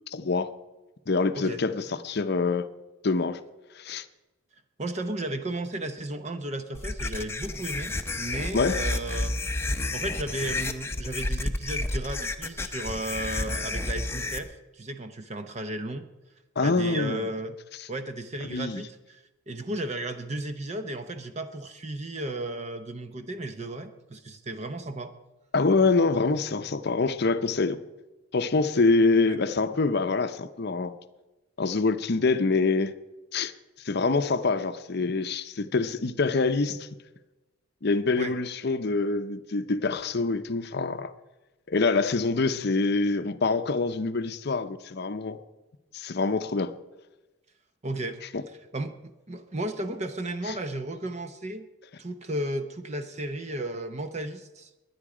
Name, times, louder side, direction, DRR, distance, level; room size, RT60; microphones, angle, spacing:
voice 1, 0.1-0.5 1.1-2.7 3.0-3.4 3.8-4.1 8.5-8.8 16.6-17.3 17.8-17.9 18.5-18.8 25.5-27.8 28.3-30.9 31.6-32.9 33.3-33.5 33.8-36.9 37.8-41.1 41.7-45.4 45.9-46.7 48.3-48.4 50.5-50.6, left 3 dB, 50° left, 0.7 m, -25 dB
voice 2, 4.8-9.4 9.9-16.0 16.6-17.6 17.9-25.1 29.3-29.4 38.2-38.3 47.8-48.2 48.5-51.7 52.0-54.7, right 1 dB, 30° right, 0.7 m, -34 dB
sound 1, 6.7-14.4, left 2 dB, 10° left, 0.7 m, -30 dB
22.0 x 9.6 x 4.9 m
head